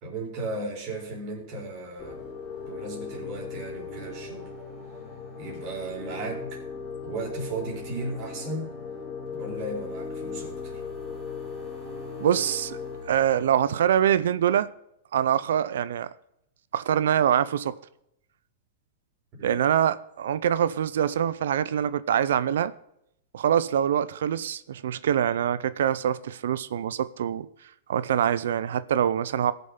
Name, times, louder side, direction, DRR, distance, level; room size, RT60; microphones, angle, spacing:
voice 1, 0.0-2.2 2.7-4.5 5.4-6.6 7.0-8.7 9.3-10.8 19.3-19.6, right 2 dB, 35° right, 4.0 m, -35 dB
sound 1, 2.0-14.0, left 5 dB, 15° left, 3.3 m, -38 dB
voice 2, 12.2-12.8 13.1-14.7 15.1-16.1 16.7-17.8 19.4-22.7 23.3-27.5 27.9-29.5, right 9 dB, 80° right, 0.5 m, -24 dB
18.5 x 6.7 x 3.8 m
supercardioid pair, 165°, 0 cm